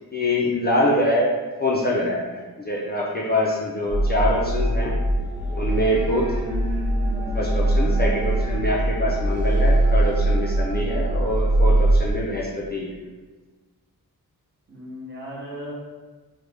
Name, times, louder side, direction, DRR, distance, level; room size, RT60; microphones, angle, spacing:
voice 1, 0.1-1.3 1.6-5.0 5.5-6.3 7.3-12.9, left 1 dB, 30° left, -4 dB, 0.4 m, -24 dB
sound 1, 3.9-12.1, right 1 dB, 60° right, 0.5 m, -22 dB
sound 2, 5.3-10.5, right 2 dB, 5° right, 0.7 m, -37 dB
voice 2, 7.7-8.0 14.7-15.7, equal, 30° right, -6 dB, 0.9 m, -37 dB
3.1 x 2.0 x 3.3 m, 1.3 s
wide cardioid pair, 95°, 36 cm